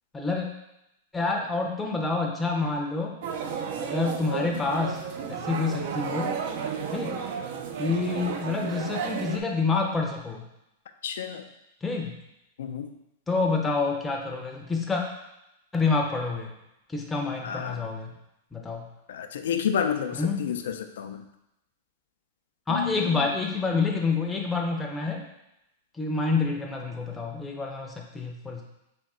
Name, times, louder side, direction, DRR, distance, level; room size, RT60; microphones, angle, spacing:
voice 1, 0.1-0.5 1.1-3.1 3.8-5.0 5.3-6.4 6.9-7.2 7.8-10.4 11.8-12.1 13.3-15.0 15.7-16.5 16.9-18.1 18.5-18.9 20.1-20.4 22.7-25.2 26.0-28.6, left 4 dB, 10° left, 0 dB, 0.5 m, -28 dB
sound 1, 3.2-9.4, right 6 dB, 55° right, 0.4 m, -32 dB
voice 2, 11.0-11.4 12.6-12.9 17.4-17.8 19.1-21.2 22.7-23.2, left 8 dB, 80° left, 7 dB, 0.4 m, -30 dB
3.5 x 2.8 x 4.2 m, 0.86 s
supercardioid pair, 145°, 0 cm